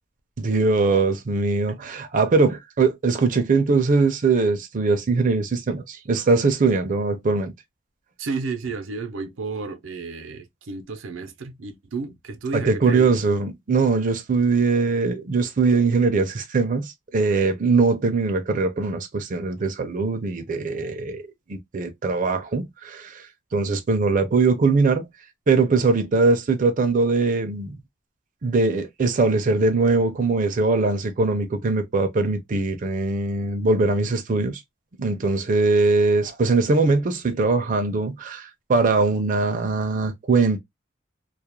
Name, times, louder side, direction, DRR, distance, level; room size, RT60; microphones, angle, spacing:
voice 1, 0.4-7.5 12.5-23.3 23.5-25.1 25.5-27.8 28.4-34.6 35.0-40.6, right 3 dB, 40° right, 0.4 m, -21 dB
voice 2, 8.2-13.1, right 4 dB, 90° right, 0.6 m, -32 dB
2.3 x 2.0 x 2.9 m
head